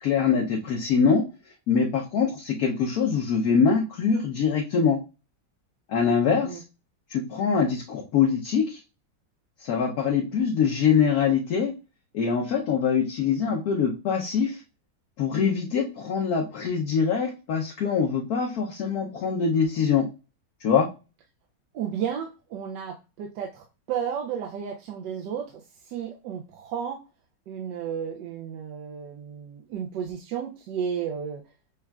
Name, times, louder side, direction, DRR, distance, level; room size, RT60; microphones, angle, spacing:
voice 1, 0.0-1.2 1.7-5.0 5.9-6.6 7.1-8.8 9.6-11.7 12.1-14.6 15.2-20.1 20.6-20.9, left 6 dB, 65° left, 1 dB, 1.0 m, -23 dB
voice 2, 6.3-6.6 21.7-27.0 27.5-31.4, right 8 dB, 75° right, 1 dB, 1.2 m, -33 dB
6.3 x 2.4 x 2.3 m, 0.30 s
omnidirectional pair, 2.0 m